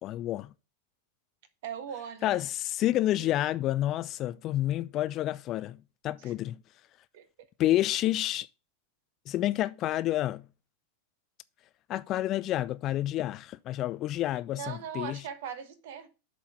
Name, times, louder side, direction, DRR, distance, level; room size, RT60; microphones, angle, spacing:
voice 1, 0.0-0.5 2.2-6.6 7.6-8.5 9.3-10.5 11.9-15.2, left 14 dB, 35° left, 0.3 m, -29 dB
voice 2, 1.6-2.4 3.2-3.3 6.2-6.3 7.1-7.3 14.6-16.1, right 8 dB, 55° right, 1.2 m, -39 dB
7.4 x 4.3 x 5.8 m
figure-of-eight pair, 90°, 0 cm